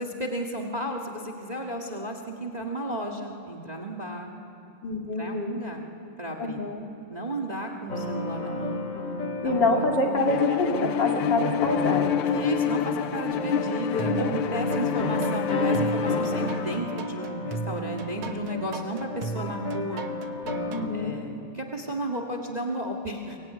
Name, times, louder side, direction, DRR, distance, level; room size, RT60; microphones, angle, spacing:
voice 1, 0.0-4.3 5.2-5.8 6.2-6.7 7.1-8.8 9.4-9.9 12.3-20.0 20.9-23.4, right 1 dB, 20° right, 3 dB, 1.7 m, -33 dB
voice 2, 4.8-5.5 6.4-6.8 9.4-12.3 13.9-14.3 20.7-21.2, left 2 dB, 55° left, 1 dB, 3.0 m, -26 dB
sound 1, 7.9-20.9, left 1 dB, 40° left, 2.3 m, -32 dB
Bowed string instrument, 10.3-16.8, left 10 dB, 90° left, 1.7 m, -28 dB
sound 2, 14.0-14.8 15.2-20.8, right 5 dB, 75° right, 2.0 m, -36 dB
24.0 x 21.5 x 9.2 m, 2.6 s
omnidirectional pair, 2.4 m